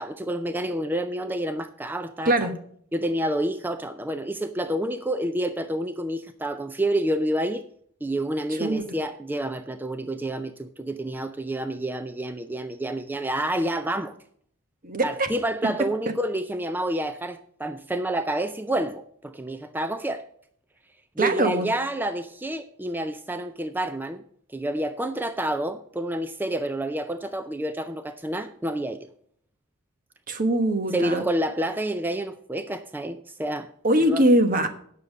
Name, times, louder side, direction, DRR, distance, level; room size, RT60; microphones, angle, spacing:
voice 1, 0.0-2.3 2.9-7.6 8.0-14.1 15.0-20.2 21.2-24.2 24.5-29.1 30.9-33.7 34.1-34.2, right 1 dB, 10° right, 10 dB, 0.4 m, -28 dB
voice 2, 14.8-15.3 21.2-21.7 30.3-31.2 33.8-34.7, right 1 dB, 40° right, 8 dB, 1.2 m, -22 dB
9.3 x 6.7 x 6.4 m, 0.63 s
head